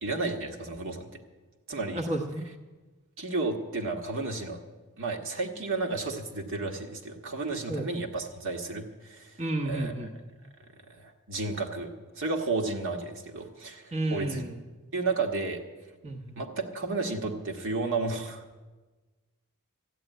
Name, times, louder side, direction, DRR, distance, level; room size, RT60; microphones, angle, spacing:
voice 1, 0.0-1.1 1.7-2.0 3.2-4.6 5.0-9.3 9.6-9.9 11.0-14.4 14.9-15.6 16.4-18.4, right 3 dB, 60° right, 2 dB, 1.5 m, -32 dB
voice 2, 1.9-2.4 7.7-7.9 9.4-10.1 13.9-14.6 16.0-16.4, right 1 dB, 30° right, 2 dB, 1.1 m, -31 dB
13.5 x 8.9 x 9.1 m, 1.2 s
head